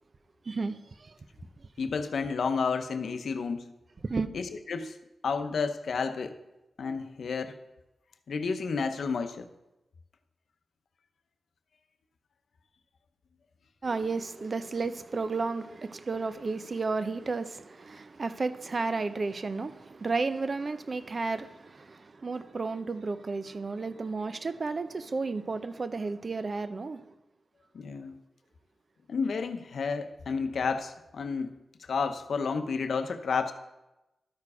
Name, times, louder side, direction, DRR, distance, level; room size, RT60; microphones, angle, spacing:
voice 1, 0.5-1.2 1.6-1.7 4.0-4.3 13.8-27.0, right 4 dB, 50° right, 0.6 m, -32 dB
voice 2, 1.8-3.7 4.3-5.0 5.2-6.4 6.8-7.6 8.3-9.5 27.7-28.2 29.1-33.5, left 5 dB, 75° left, 0.7 m, -31 dB
12.0 x 4.8 x 4.8 m
cardioid pair, 60°, 0 cm